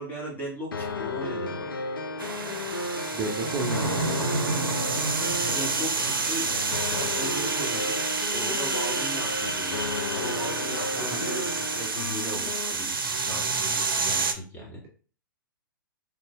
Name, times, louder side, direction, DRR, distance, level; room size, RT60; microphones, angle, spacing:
voice 1, 0.0-1.7 5.4-8.0 8.3-14.8, equal, 15° left, -3 dB, 1.5 m, -37 dB
sound 1, 0.7-12.7, left 3 dB, 75° left, 0.5 m, -33 dB
sound 2, 2.2-14.3, right 4 dB, 70° right, 0.6 m, -29 dB
voice 2, 3.1-4.1 10.9-11.2, right 4 dB, 25° right, 1 dB, 0.5 m, -32 dB
4.0 x 3.4 x 2.2 m, 0.40 s
figure-of-eight pair, 115°, 12 cm